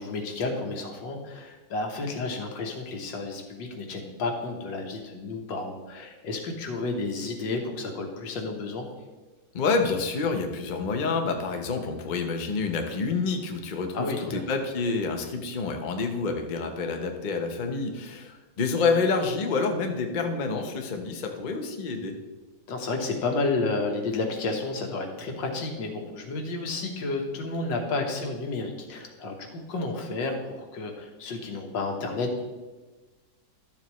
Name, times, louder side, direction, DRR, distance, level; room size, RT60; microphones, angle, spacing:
voice 1, 0.0-8.9 13.9-14.4 22.7-32.4, left 3 dB, 85° left, 3 dB, 1.8 m, -31 dB
voice 2, 9.5-22.2, left 4 dB, 45° left, 4 dB, 0.6 m, -28 dB
12.0 x 7.2 x 3.1 m, 1.2 s
omnidirectional pair, 2.0 m